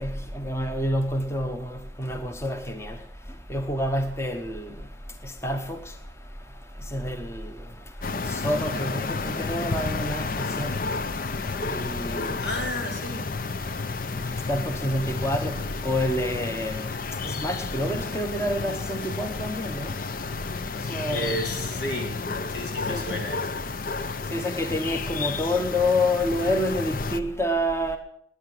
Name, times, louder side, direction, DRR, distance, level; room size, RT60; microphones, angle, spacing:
voice 1, 0.0-3.0 3.5-4.9 5.2-6.0 6.8-7.7 8.1-10.9 11.6-12.5 14.0-20.2 20.7-21.4 22.9-23.3 24.0-28.0, left 1 dB, 15° left, 1.0 m, -28 dB
sound 1, 8.0-27.2, left 4 dB, 50° left, 0.6 m, -31 dB
voice 2, 12.2-13.4 21.1-22.2 22.5-23.5, left 1 dB, 75° left, 4.0 m, -32 dB
18.0 x 9.9 x 7.8 m
head